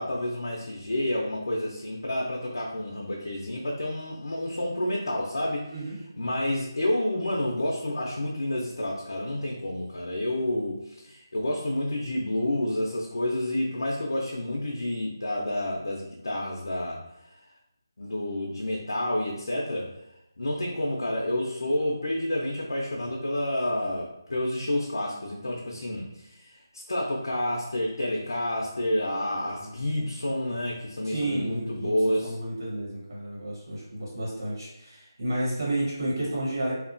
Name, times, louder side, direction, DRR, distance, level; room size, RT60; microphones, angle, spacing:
voice 1, 0.0-5.6 6.2-17.4 18.0-19.9 20.4-32.3, left 1 dB, 80° left, -2 dB, 0.5 m, -29 dB
voice 2, 31.0-36.7, right 1 dB, 70° right, -7 dB, 1.4 m, -31 dB
2.8 x 2.1 x 2.5 m, 0.84 s
figure-of-eight pair, 175°, 2 cm